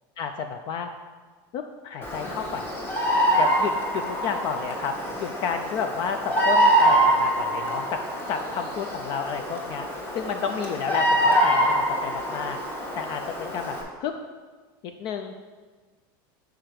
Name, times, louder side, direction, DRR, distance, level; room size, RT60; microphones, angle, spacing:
voice 1, 0.2-0.9 1.5-2.6 3.1-8.0 8.3-9.9 10.1-12.6 13.0-14.1 14.8-15.3, left 6 dB, 40° left, 6 dB, 0.4 m, -31 dB
Bird vocalization bird call bird song, 2.0-13.8, right 1 dB, 20° left, 1.1 m, -25 dB
5.0 x 4.6 x 5.9 m, 1.4 s
supercardioid pair, 150°, 12 cm